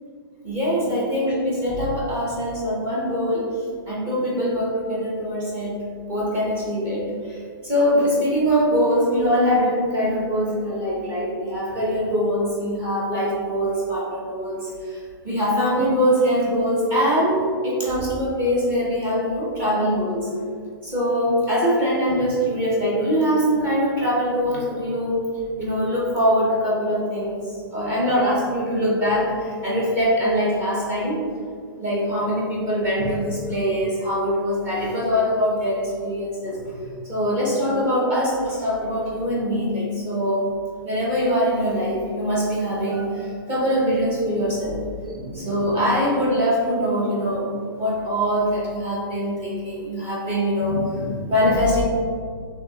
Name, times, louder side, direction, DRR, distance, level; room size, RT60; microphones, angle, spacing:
voice 1, 0.4-3.5 3.9-5.8 6.1-20.3 20.8-25.2 25.6-31.2 31.8-40.5 40.8-51.8, equal, 15° right, -6 dB, 0.9 m, -23 dB
5.1 x 3.5 x 2.8 m, 2.1 s
hypercardioid pair, 180°, 12 cm